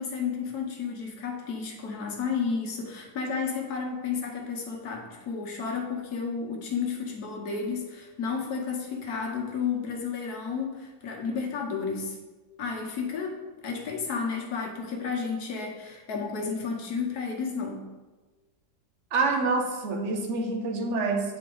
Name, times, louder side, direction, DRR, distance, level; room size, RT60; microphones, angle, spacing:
voice 1, 0.0-12.2 12.6-17.8, left 5 dB, 60° left, 1 dB, 1.5 m, -32 dB
voice 2, 19.1-21.4, right 3 dB, 55° right, 3 dB, 0.9 m, -27 dB
8.7 x 4.2 x 3.8 m, 1.2 s
omnidirectional pair, 1.9 m